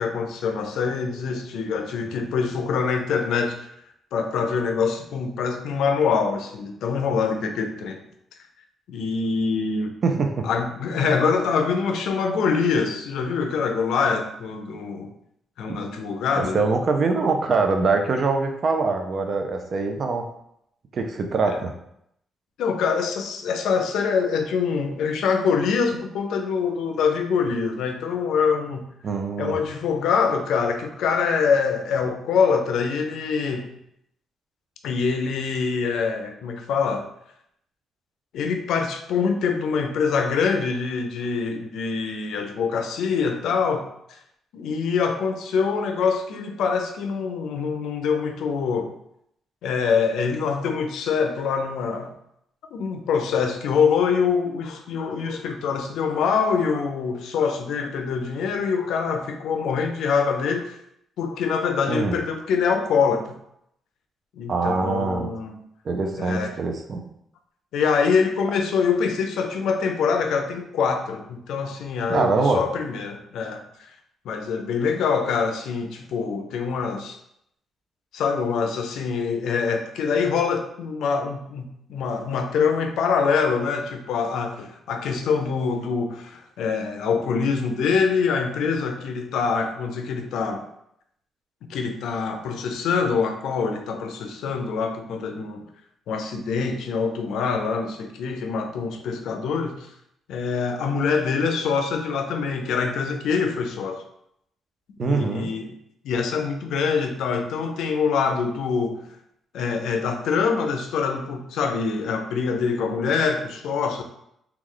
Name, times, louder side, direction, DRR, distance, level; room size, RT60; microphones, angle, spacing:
voice 1, 0.0-3.6 4.1-8.0 8.9-9.9 10.4-15.1 15.6-16.7 21.4-21.6 22.6-28.9 29.4-33.7 34.8-37.1 38.3-44.2 44.5-48.9 49.6-52.1 52.7-60.7 61.2-63.4 64.4-65.6 66.2-66.5 67.7-73.6 74.2-77.2 78.1-90.6 91.7-95.6 96.1-99.9 100.3-104.0 105.0-105.7 106.0-109.0 109.5-114.0, left 5 dB, 90° left, 5 dB, 0.4 m, -24 dB
voice 2, 10.0-10.5 16.4-20.3 20.9-21.7 29.0-29.6 61.9-62.2 64.5-65.3 65.8-67.0 72.1-72.6 105.0-105.5, right 4 dB, 45° right, 4 dB, 0.4 m, -23 dB
3.1 x 2.3 x 3.7 m, 0.75 s
cardioid pair, 145°, 0 cm